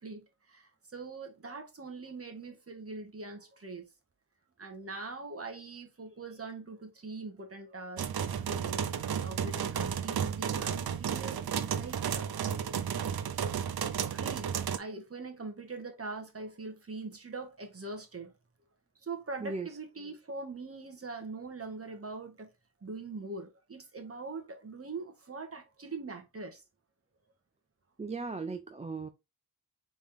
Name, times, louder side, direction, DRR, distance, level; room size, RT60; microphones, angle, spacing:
voice 1, 0.0-3.9 4.6-8.9 9.2-11.4 11.7-12.3 13.9-18.3 19.0-22.5 22.8-26.6, right 3 dB, 40° right, 1.3 m, -42 dB
sound 1, 8.0-14.8, right 8 dB, 75° right, 0.6 m, -33 dB
voice 2, 28.0-29.1, right 4 dB, 20° right, 0.4 m, -37 dB
4.2 x 3.5 x 3.6 m
wide cardioid pair, 125°, 37 cm